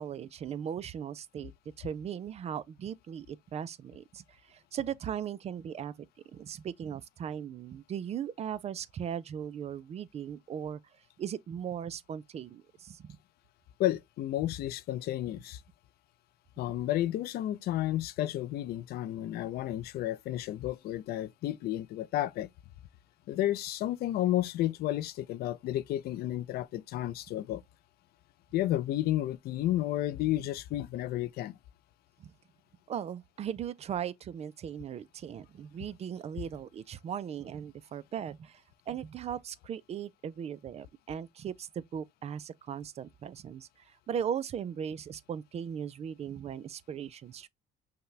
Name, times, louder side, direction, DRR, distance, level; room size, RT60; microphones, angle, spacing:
voice 1, 0.0-10.8 11.2-13.2 32.2-32.3 32.9-47.5, right 8 dB, 40° right, 0.4 m, -38 dB
voice 2, 13.8-15.6 16.6-22.5 23.3-27.6 28.5-31.6, left 14 dB, 65° left, 0.4 m, -32 dB
5.7 x 2.1 x 3.1 m
cardioid pair, 110°, 17 cm